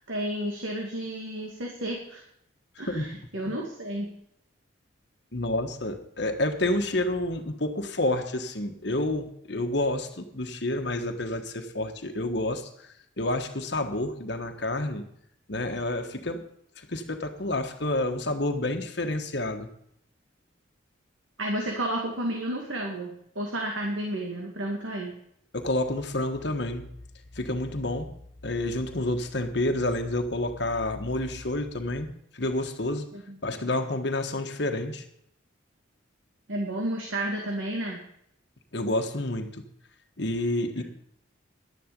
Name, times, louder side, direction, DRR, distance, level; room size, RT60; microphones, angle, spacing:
voice 1, 0.0-2.2 2.8-4.1 21.4-25.1 33.1-33.4 36.5-38.0 40.8-40.9, right 1 dB, 80° right, 0 dB, 2.3 m, -32 dB
voice 2, 5.3-12.7 13.2-15.0 15.5-16.5 16.8-19.7 25.5-26.9 27.3-28.1 28.4-32.1 32.3-33.1 33.4-35.0 38.7-39.6 40.2-40.8, left 1 dB, 60° left, 5 dB, 1.4 m, -29 dB
11.5 x 10.5 x 5.3 m, 0.71 s
head